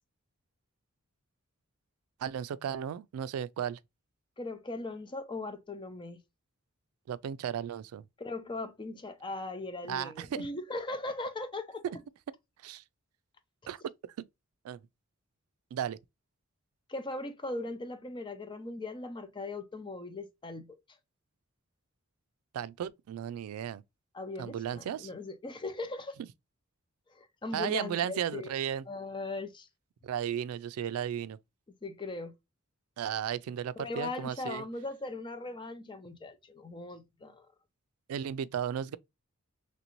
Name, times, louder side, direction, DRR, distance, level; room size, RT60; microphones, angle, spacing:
voice 1, 2.2-3.8 7.1-8.0 9.9-10.5 11.8-12.0 12.6-12.8 13.7-13.9 14.6-14.8 15.7-16.0 22.5-23.8 24.4-25.1 27.5-28.9 30.0-31.4 33.0-34.6 38.1-39.0, right 9 dB, 85° right, 0.3 m, -34 dB
voice 2, 4.4-6.2 8.2-11.8 16.9-20.8 24.1-26.2 27.1-28.5 28.9-29.7 31.8-32.3 33.8-37.5, left 2 dB, 25° left, 0.5 m, -39 dB
3.3 x 2.6 x 2.9 m
head